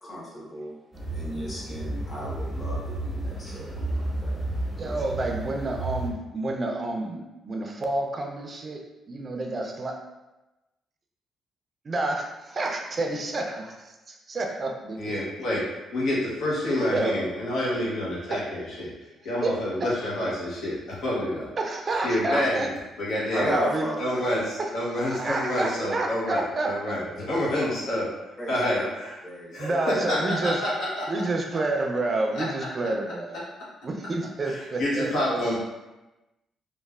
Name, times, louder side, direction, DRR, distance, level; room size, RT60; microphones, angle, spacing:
voice 1, 0.0-0.7 1.1-4.3 4.8-5.0 23.3-23.9 27.1-27.7 28.4-28.9 29.2-29.9, equal, 35° left, -6 dB, 1.1 m, -34 dB
sound 1, 0.9-6.1, right 1 dB, 5° left, 0.7 m, -32 dB
voice 2, 4.8-8.8 9.1-10.0 11.8-15.0 16.9-17.1 18.3-18.4 19.4-19.5 19.8-19.9 21.6-22.7 23.5-23.9 24.6-24.7 25.1-26.7 29.6-30.6 31.1-33.5 33.8-35.6, right 2 dB, 40° right, 2 dB, 0.4 m, -29 dB
voice 3, 15.0-21.5 21.9-22.7 23.0-23.5 24.0-29.2 29.5-31.1 31.5-31.6 32.3-32.5 34.4-35.6, left 1 dB, 75° left, -6 dB, 0.7 m, -28 dB
3.1 x 2.1 x 2.3 m, 1.0 s
cardioid pair, 90°, 0 cm